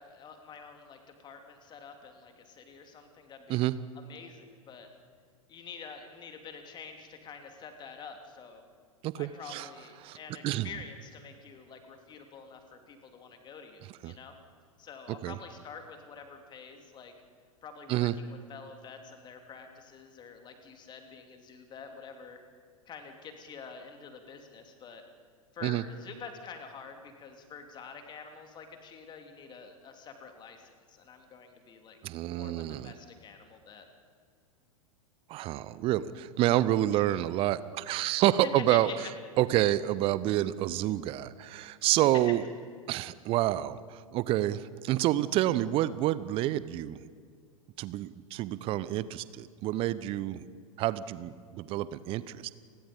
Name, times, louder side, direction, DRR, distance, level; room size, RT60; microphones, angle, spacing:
voice 1, 0.0-3.7 3.9-4.9 5.5-8.6 9.2-14.3 14.8-17.1 17.6-22.4 22.9-25.0 25.5-32.0 32.4-33.9 36.9-37.0 38.4-39.1, left 5 dB, 25° left, 5 dB, 3.0 m, -47 dB
voice 2, 9.0-9.7 10.0-10.2 10.4-10.7 14.0-14.1 15.2-15.4 17.9-18.1 25.6-25.8 32.0-32.9 35.3-38.9 39.4-42.4 42.9-47.0 47.8-50.4 50.8-52.5, right 14 dB, 30° right, 17 dB, 0.8 m, -28 dB
30.0 x 20.5 x 5.3 m, 2.1 s
figure-of-eight pair, 95°, 18 cm